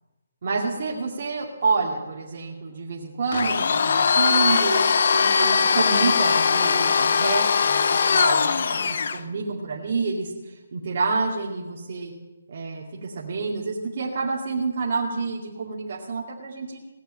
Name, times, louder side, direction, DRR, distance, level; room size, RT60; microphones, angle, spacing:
voice 1, 0.4-4.8 5.1-12.1 12.5-16.8, right 4 dB, 50° right, -4 dB, 2.4 m, -28 dB
Domestic sounds home sounds, 3.3-9.2, left 5 dB, 55° left, 0.8 m, -20 dB
18.0 x 6.7 x 9.9 m, 1.1 s
hypercardioid pair, 165°, 0 cm